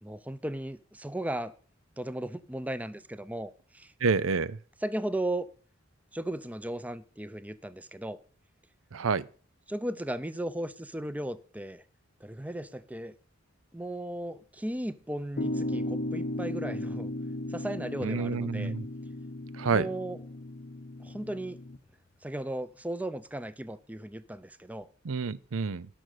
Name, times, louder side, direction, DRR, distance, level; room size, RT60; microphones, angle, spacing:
voice 1, 0.0-1.5 2.0-3.9 4.8-5.5 6.1-8.2 9.7-11.8 12.2-13.1 13.7-17.1 17.5-18.7 19.7-20.2 21.0-21.6 22.2-24.9, right 1 dB, 5° right, 0.6 m, -36 dB
voice 2, 4.0-4.6 8.9-9.2 18.0-18.8 19.6-19.9 25.0-25.9, right 4 dB, 85° right, 0.6 m, -28 dB
sound 1, 15.4-21.8, left 1 dB, 45° left, 0.7 m, -36 dB
17.0 x 6.2 x 6.6 m
head